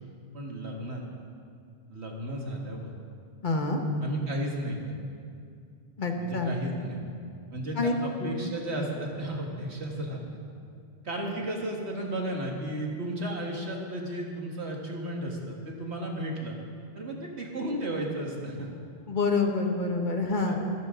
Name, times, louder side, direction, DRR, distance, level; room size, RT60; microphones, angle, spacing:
voice 1, 0.3-1.0 1.9-2.9 4.0-4.9 6.2-7.1 7.5-10.2 11.0-16.6 16.9-18.7 20.5-20.6, right 1 dB, 90° right, 0 dB, 2.2 m, -34 dB
voice 2, 3.4-3.8 6.0-6.6 7.8-7.9 8.2-8.3 19.1-20.6, left 3 dB, 50° left, 3 dB, 1.5 m, -27 dB
26.0 x 10.0 x 3.8 m, 2.4 s
omnidirectional pair, 1.1 m